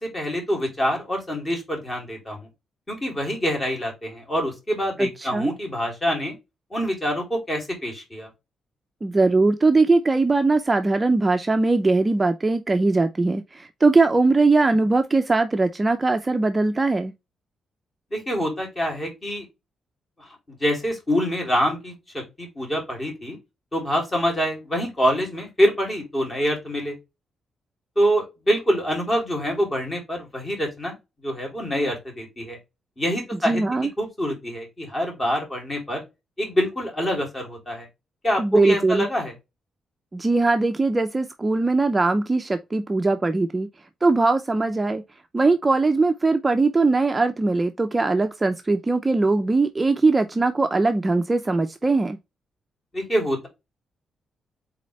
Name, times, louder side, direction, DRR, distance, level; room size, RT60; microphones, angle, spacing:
voice 1, 0.0-2.4 2.9-6.3 6.7-8.3 18.1-19.5 20.2-23.4 23.7-26.9 28.0-30.9 31.2-32.6 33.0-33.6 34.0-36.0 36.4-37.9 38.2-39.3 52.9-53.5, equal, 25° left, 2.8 m, -25 dB
voice 2, 5.0-5.5 9.0-17.1 33.5-33.9 38.4-39.0 40.1-43.7 44.0-45.0 45.3-52.2, right 3 dB, 20° right, 0.5 m, -20 dB
4.2 x 3.9 x 3.1 m
cardioid pair, 115°, 0 cm